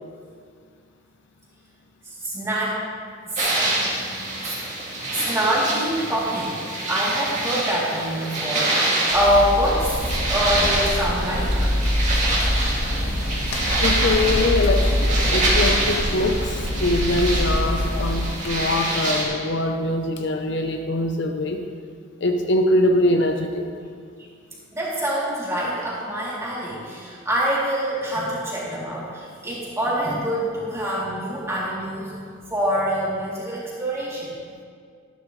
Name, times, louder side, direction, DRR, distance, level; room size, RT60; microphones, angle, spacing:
voice 1, 2.0-2.8 3.2-3.5 4.4-4.6 5.1-6.5 6.9-11.7 24.7-32.2 32.5-34.4, equal, 15° right, -8 dB, 3.0 m, -25 dB
sound 1, 3.4-19.2, right 2 dB, 35° right, 2.5 m, -26 dB
sound 2, 9.1-18.5, equal, 90° left, 1.5 m, -24 dB
voice 2, 13.8-15.0 15.3-21.6 22.2-23.7, left 1 dB, 60° left, 4 dB, 0.7 m, -23 dB
13.5 x 11.5 x 3.2 m, 2.1 s
head